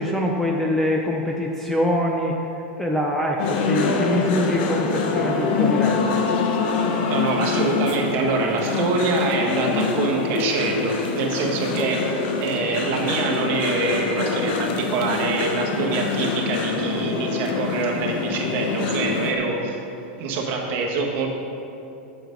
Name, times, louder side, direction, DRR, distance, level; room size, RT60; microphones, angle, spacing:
voice 1, 0.0-2.4 2.8-6.2, left 1 dB, 5° left, -1 dB, 0.5 m, -24 dB
sound 1, 3.4-19.3, left 4 dB, 60° left, 0.9 m, -25 dB
voice 2, 6.8-19.8 20.2-21.3, right 4 dB, 40° right, 0 dB, 1.4 m, -25 dB
7.6 x 6.6 x 5.1 m, 2.8 s
supercardioid pair, 150°, 6 cm